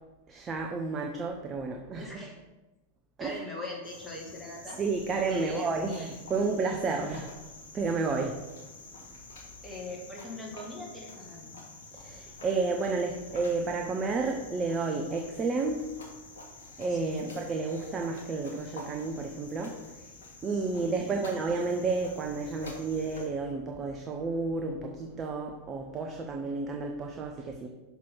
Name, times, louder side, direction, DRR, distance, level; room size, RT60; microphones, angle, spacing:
voice 1, 0.3-2.1 3.2-3.4 4.8-7.3 7.7-8.4 11.9-15.9 16.8-20.1 20.4-27.7, right 4 dB, 25° right, 2 dB, 0.7 m, -31 dB
voice 2, 2.0-2.3 3.2-4.8 5.3-6.1 9.6-11.5 16.9-17.3 20.8-21.2, left 2 dB, 5° left, -3 dB, 2.1 m, -41 dB
Cricket, 3.8-23.3, left 3 dB, 65° left, 1.6 m, -48 dB
5.9 x 4.7 x 5.7 m, 1.1 s
figure-of-eight pair, 90°, 0 cm